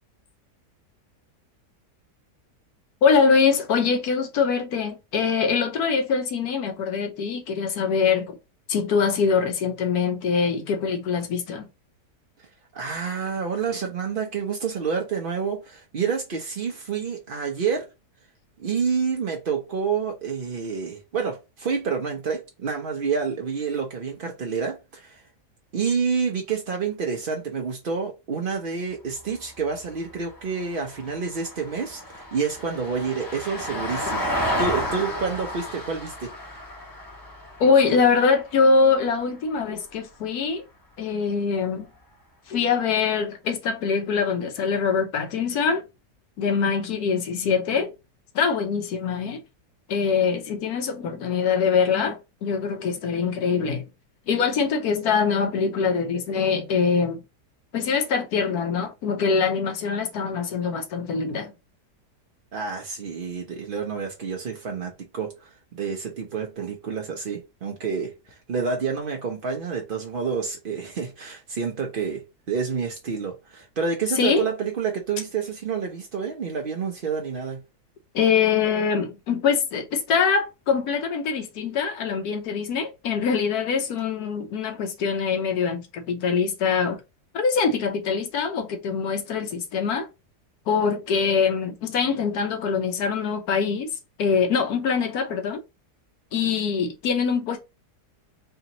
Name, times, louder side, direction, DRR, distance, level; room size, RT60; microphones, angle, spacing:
voice 1, 3.0-8.4 8.7-11.6 37.6-40.6 41.0-41.9 42.5-45.8 46.4-47.9 48.3-49.4 49.9-53.8 54.3-57.2 57.7-61.5 74.2-74.5 78.1-87.0 87.3-90.1 90.7-93.9 94.2-95.6 96.3-97.6, left 5 dB, 70° left, 1.2 m, -23 dB
voice 2, 12.4-17.9 18.6-25.3 25.7-34.3 34.6-36.3 62.5-77.6, right 5 dB, 60° right, 0.5 m, -28 dB
Vehicle, 29.1-39.5 41.8-41.9, equal, 15° left, 0.7 m, -32 dB
3.4 x 2.8 x 3.9 m
omnidirectional pair, 1.8 m